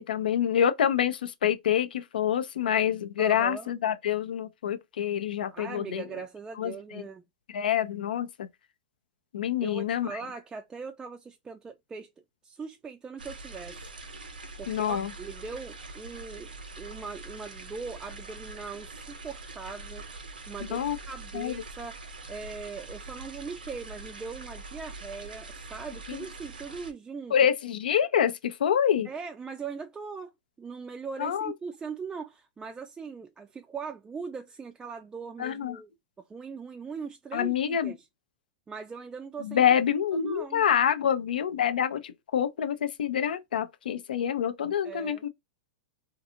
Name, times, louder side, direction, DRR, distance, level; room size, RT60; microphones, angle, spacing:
voice 1, 0.0-6.0 6.6-7.0 7.5-8.5 9.3-10.2 14.7-15.1 20.7-21.0 21.3-21.6 26.1-26.3 27.3-29.1 31.2-31.5 35.4-35.8 37.3-37.9 39.4-45.3, left 9 dB, 80° left, 0.5 m, -27 dB
voice 2, 3.2-3.7 5.5-7.2 9.6-12.1 12.4-13.9 14.6-20.0 20.5-22.0 22.3-27.3 29.0-30.3 30.6-35.9 36.3-38.0 38.7-39.6 40.1-40.6 44.8-45.2, right 5 dB, 15° right, 0.3 m, -40 dB
sound 1, 13.2-26.9, right 3 dB, 90° right, 0.8 m, -43 dB
2.5 x 2.3 x 2.6 m
hypercardioid pair, 115°, 5 cm